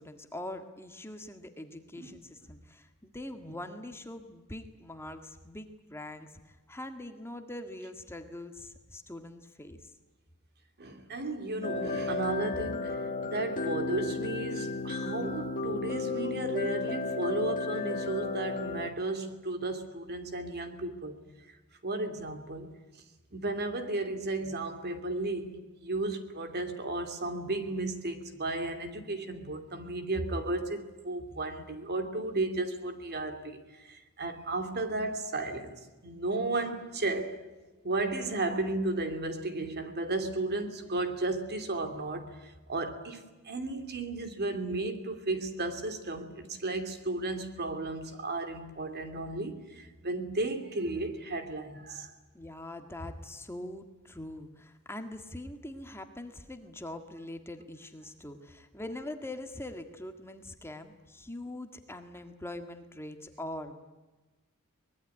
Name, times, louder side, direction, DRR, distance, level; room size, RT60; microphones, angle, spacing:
voice 1, 0.0-9.9 52.3-63.8, left 1 dB, 10° left, 1.7 m, -43 dB
voice 2, 10.8-21.2 21.8-22.7 23.3-25.5 25.8-37.4 37.8-52.1, right 2 dB, 50° right, 2.8 m, -34 dB
sound 1, 11.6-18.9, left 3 dB, 40° left, 1.7 m, -33 dB
24.0 x 20.5 x 9.7 m
head